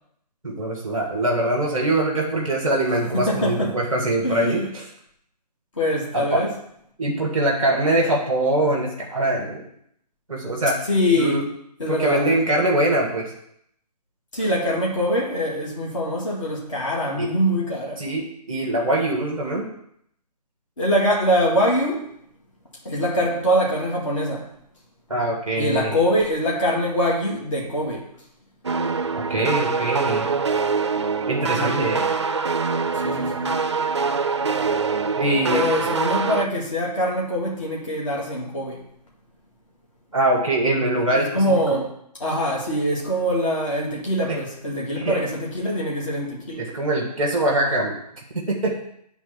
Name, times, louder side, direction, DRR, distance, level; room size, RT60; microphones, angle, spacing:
voice 1, 0.4-4.8 6.1-6.4 7.0-9.6 10.3-10.8 11.2-11.4 11.9-13.3 17.2-17.3 18.0-19.7 25.1-26.0 29.1-30.3 31.3-32.1 35.2-35.6 40.1-41.4 44.3-44.4 45.0-45.2 46.6-47.9 48.3-48.8, right 1 dB, ahead, -1 dB, 0.7 m, -23 dB
voice 2, 2.9-3.7 4.2-4.6 5.8-6.5 10.9-11.4 11.8-12.3 14.3-18.0 20.8-22.1 22.8-24.5 25.6-28.1 31.5-32.0 32.9-33.6 35.5-38.8 40.9-41.9 42.2-46.6, equal, 50° left, -3 dB, 2.1 m, -23 dB
sound 1, 28.6-36.5, right 5 dB, 45° right, 0.4 m, -24 dB
8.8 x 3.7 x 6.5 m, 0.71 s
hypercardioid pair, 175°, 21 cm